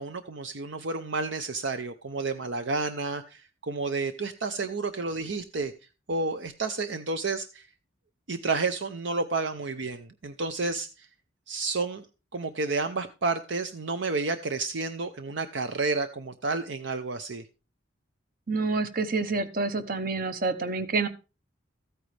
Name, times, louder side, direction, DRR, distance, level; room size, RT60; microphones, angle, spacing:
voice 1, 0.0-5.7 6.1-7.7 8.3-11.1 11.5-12.0 12.3-17.4, right 3 dB, 65° right, 10 dB, 0.7 m, -30 dB
voice 2, 18.5-21.1, right 3 dB, 45° right, 11 dB, 1.0 m, -28 dB
14.0 x 9.1 x 3.3 m, 0.31 s
head